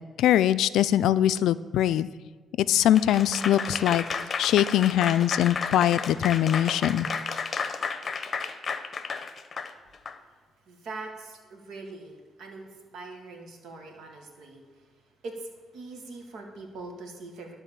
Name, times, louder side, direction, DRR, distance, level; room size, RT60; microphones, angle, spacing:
voice 1, 0.2-2.1 2.6-4.0 4.4-7.1, left 11 dB, 85° left, 15 dB, 0.3 m, -22 dB
Applause / Crowd, 2.9-10.2, left 5 dB, 45° left, 0.7 m, -32 dB
voice 2, 10.7-14.8 15.2-17.6, right 3 dB, 80° right, 2 dB, 1.8 m, -42 dB
12.0 x 4.0 x 7.1 m, 1.5 s
cardioid pair, 90°, 0 cm